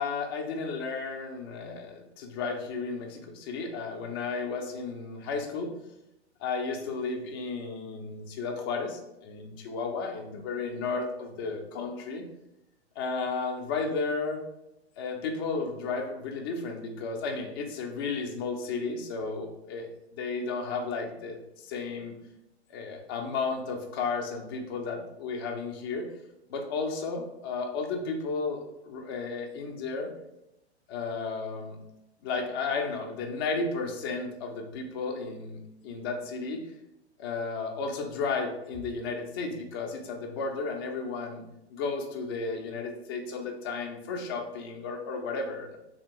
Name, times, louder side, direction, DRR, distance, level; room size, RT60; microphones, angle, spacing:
voice 1, 0.0-5.7 6.4-12.2 13.0-14.4 15.0-19.9 20.1-22.2 22.7-26.1 26.5-30.1 30.9-31.8 32.2-36.6 37.2-41.4 41.7-45.8, left 4 dB, 25° left, 2 dB, 0.4 m, -33 dB
3.4 x 2.7 x 2.8 m, 0.87 s
figure-of-eight pair, 115°, 34 cm